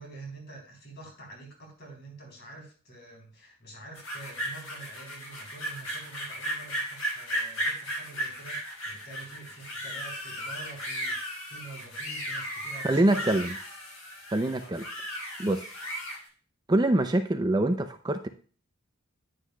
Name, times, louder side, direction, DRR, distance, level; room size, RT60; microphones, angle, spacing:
voice 1, 0.0-13.3 14.6-14.8, right 2 dB, 50° left, 1 dB, 3.8 m, -47 dB
sound 1, 4.0-16.2, equal, 70° left, 5.2 m, -35 dB
voice 2, 12.8-13.6 14.3-14.8 15.4-15.6 16.7-18.3, right 1 dB, 20° right, 7 dB, 0.5 m, -25 dB
10.0 x 9.4 x 2.3 m, 0.40 s
head